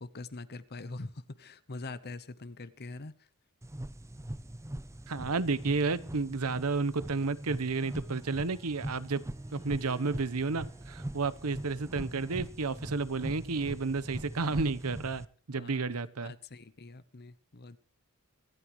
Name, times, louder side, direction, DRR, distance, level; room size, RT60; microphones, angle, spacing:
voice 1, 0.0-3.1 15.5-17.8, left 3 dB, 50° left, 14 dB, 0.9 m, -44 dB
sound 1, 3.6-15.2, right 1 dB, 15° right, 0.6 m, -41 dB
voice 2, 5.1-9.2 9.5-16.3, right 4 dB, 80° right, 17 dB, 0.9 m, -31 dB
Harp, 7.5-12.4, right 3 dB, 30° right, 4.7 m, -60 dB
25.0 x 12.0 x 3.1 m, 0.40 s
head